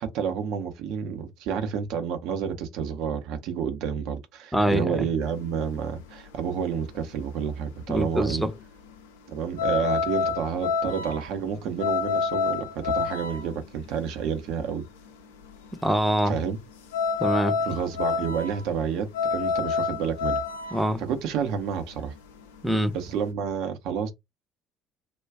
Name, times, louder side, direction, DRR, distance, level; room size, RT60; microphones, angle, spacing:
voice 1, 0.0-8.4 9.3-14.8 16.3-16.6 17.6-20.4 21.0-22.1 22.9-24.1, right 7 dB, 60° right, 0.7 m, -30 dB
voice 2, 4.5-5.1 7.9-8.5 15.8-16.4 17.2-17.6 20.7-21.0 22.6-23.0, equal, ahead, 0.7 m, -24 dB
sound 1, 5.3-23.3, left 5 dB, 70° left, 0.5 m, -29 dB
2.3 x 2.2 x 3.4 m
figure-of-eight pair, 55°, 0 cm